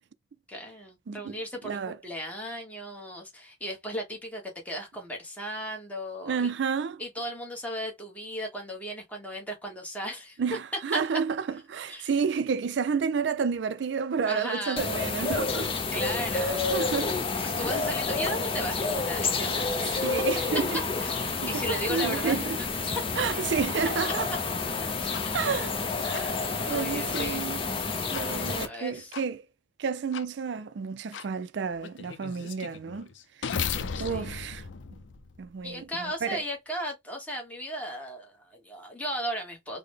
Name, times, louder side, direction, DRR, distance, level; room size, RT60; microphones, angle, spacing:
voice 1, 0.5-6.5 7.0-10.4 10.9-11.0 11.9-12.1 14.3-14.8 15.9-16.8 17.6-20.2 21.0-22.4 25.2-25.6 26.7-27.5 28.2-29.1 33.9-34.5 35.6-39.8, equal, 10° left, 1.1 m, -36 dB
voice 2, 1.6-2.0 6.3-7.0 10.4-11.4 11.7-15.7 16.3-17.2 17.6-17.8 19.5-19.6 20.0-20.8 21.4-22.6 23.2-24.3 25.3-25.8 26.0-26.4 26.7-27.6 28.1-29.4 29.8-33.1 33.4-33.6 34.0-34.6 34.9-35.0 35.4-36.4, right 6 dB, 65° right, 0.4 m, -30 dB
sound 1, 14.8-28.7, left 4 dB, 30° left, 0.6 m, -29 dB
sound 2, 25.1-25.2 26.1-26.2 27.1-27.2 28.1-28.3 29.1-29.2 30.1-30.2 31.1-31.3 31.8-35.7, left 6 dB, 80° left, 0.5 m, -36 dB
3.8 x 2.1 x 3.3 m
head